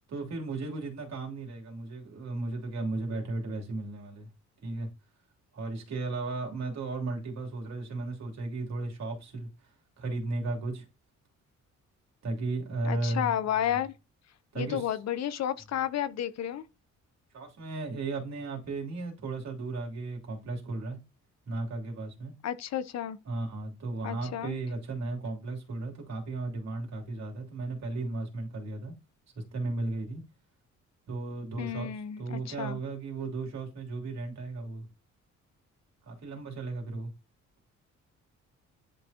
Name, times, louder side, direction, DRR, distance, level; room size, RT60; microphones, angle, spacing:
voice 1, 0.1-4.3 4.6-4.9 5.5-9.5 10.0-10.8 12.2-13.3 14.5-14.9 17.3-21.0 21.5-22.3 23.2-28.9 29.5-30.2 31.1-31.9 32.2-34.9 36.0-37.1, right 3 dB, 60° right, 3.1 m, -35 dB
voice 2, 12.8-13.9 14.6-16.6 22.4-23.2 24.0-24.6 31.6-32.8, left 10 dB, 60° left, 0.7 m, -32 dB
10.5 x 3.7 x 2.9 m
cardioid pair, 90°, 30 cm